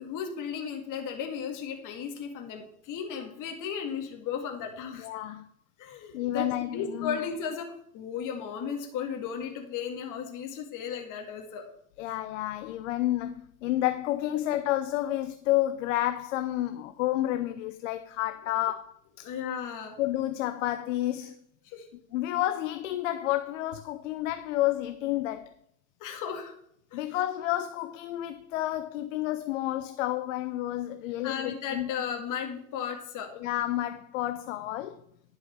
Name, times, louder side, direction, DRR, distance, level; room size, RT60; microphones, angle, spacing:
voice 1, 0.0-5.1 5.8-11.7 19.2-19.9 21.6-21.9 26.0-26.5 26.9-27.0 31.2-33.3, left 7 dB, 55° left, 2.1 m, -35 dB
voice 2, 5.0-5.5 6.1-7.2 12.0-19.3 20.0-21.3 22.1-25.5 26.9-31.9 33.3-35.0, left 14 dB, 90° left, 0.7 m, -30 dB
11.0 x 5.6 x 6.2 m
supercardioid pair, 90°, 37 cm